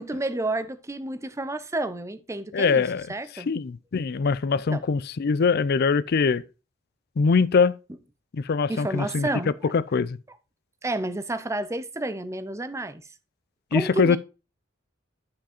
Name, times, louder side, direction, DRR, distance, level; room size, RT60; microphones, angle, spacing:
voice 1, 0.0-3.5 4.7-4.8 8.7-9.7 10.3-10.4 10.8-13.0 13.7-14.2, right 2 dB, 15° right, 0.6 m, -30 dB
voice 2, 2.5-3.0 3.5-6.4 7.2-7.7 8.3-9.3 9.7-10.2 13.7-14.2, left 5 dB, 55° left, 0.4 m, -22 dB
9.4 x 5.1 x 4.3 m
head